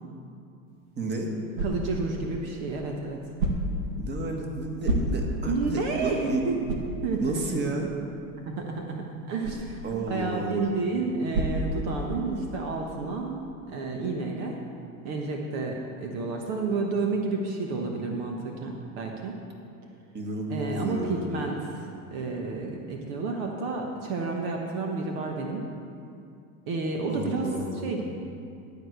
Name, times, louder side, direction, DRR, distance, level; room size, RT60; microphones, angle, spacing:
sound 1, 0.7-12.4, right 1 dB, 80° right, 1.7 m, -34 dB
voice 1, 0.9-1.3 4.0-6.4 7.2-7.9 9.8-10.7 20.1-21.4 27.1-27.9, right 2 dB, 25° right, 1 dB, 1.8 m, -32 dB
voice 2, 1.6-3.2 5.4-6.6 7.0-7.4 8.5-13.4 13.7-14.6 15.0-19.3 20.5-25.6 26.7-28.0, right 3 dB, 60° right, 1 dB, 1.3 m, -30 dB
12.0 x 5.0 x 8.0 m, 2.5 s
hypercardioid pair, 105°, 43 cm